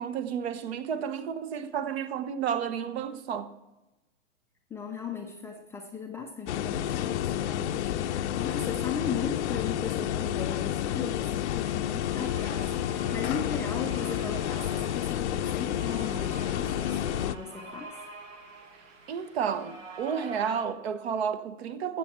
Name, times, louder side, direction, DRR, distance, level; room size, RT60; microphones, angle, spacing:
voice 1, 0.0-3.5 19.1-22.0, right 7 dB, 55° right, 1.0 m, -31 dB
voice 2, 4.7-17.9, left 6 dB, 5° left, 0.4 m, -37 dB
sound 1, 6.5-17.4, left 11 dB, 60° left, 0.7 m, -30 dB
sound 2, 11.3-20.6, right 3 dB, 85° right, 2.1 m, -46 dB
15.5 x 6.9 x 4.3 m
hypercardioid pair, 125°, 38 cm